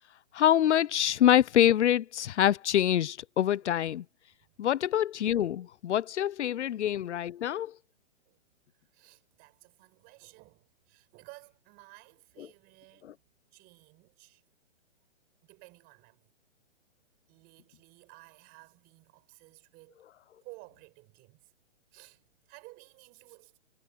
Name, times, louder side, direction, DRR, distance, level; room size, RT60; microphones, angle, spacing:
voice 1, 0.3-4.0 4.6-7.7 12.4-12.5 13.0-13.1, left 11 dB, 85° left, 0.5 m, -25 dB
voice 2, 8.9-13.1 13.5-14.4 15.4-16.3 17.3-20.0 20.4-21.5 21.9-23.6, right 24 dB, 25° right, 6.0 m, -55 dB
hypercardioid pair, 145°, 34 cm